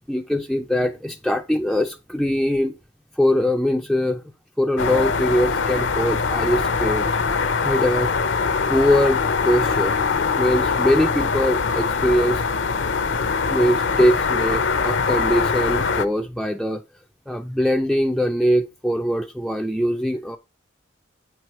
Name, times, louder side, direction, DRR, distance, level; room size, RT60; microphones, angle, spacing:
voice 1, 0.1-2.7 3.2-4.2 4.6-7.2 7.6-8.1 8.7-10.0 10.4-12.4 13.5-16.8 17.3-20.4, equal, ahead, 0.3 m, -22 dB
sound 1, 4.8-16.1, left 5 dB, 70° left, 0.6 m, -22 dB
8.7 x 4.7 x 4.3 m
head